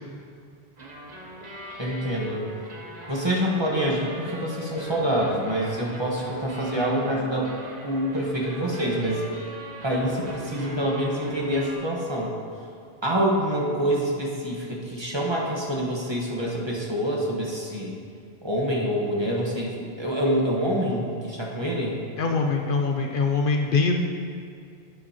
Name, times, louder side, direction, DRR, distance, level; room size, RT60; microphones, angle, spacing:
sound 1, 0.8-11.7, equal, 45° right, 1.0 m, -41 dB
voice 1, 1.8-2.5 3.1-7.5 7.8-9.2 9.8-12.4 13.0-17.9 18.4-22.0, equal, 25° right, -3 dB, 1.3 m, -26 dB
voice 2, 22.2-24.0, left 4 dB, 60° left, 3 dB, 0.7 m, -23 dB
11.0 x 8.7 x 2.9 m, 2.4 s
omnidirectional pair, 1.1 m